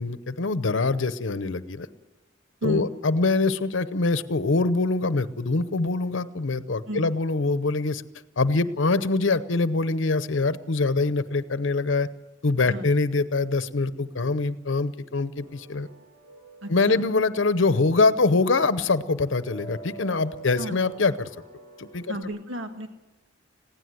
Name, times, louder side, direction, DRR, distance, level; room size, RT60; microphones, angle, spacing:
voice 1, 0.0-1.9 2.6-8.0 8.4-12.1 12.4-15.9 16.7-21.3 21.8-22.1, left 3 dB, 75° left, 14 dB, 0.8 m, -24 dB
sound 1, 15.4-22.2, right 3 dB, 35° right, 4.3 m, -47 dB
voice 2, 16.6-17.0 20.6-20.8 22.1-22.9, equal, 85° right, 6 dB, 1.8 m, -33 dB
21.0 x 16.0 x 7.9 m, 1.0 s
head